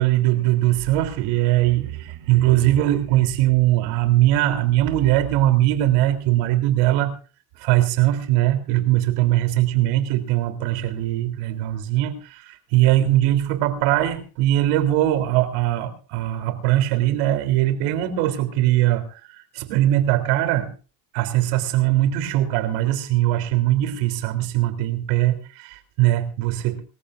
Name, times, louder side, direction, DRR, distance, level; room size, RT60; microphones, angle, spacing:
voice 1, 0.0-7.1 7.6-20.7 21.1-26.8, right 14 dB, 80° right, 7 dB, 3.7 m, -21 dB
25.5 x 14.5 x 2.6 m, 0.37 s
supercardioid pair, 90°, 45 cm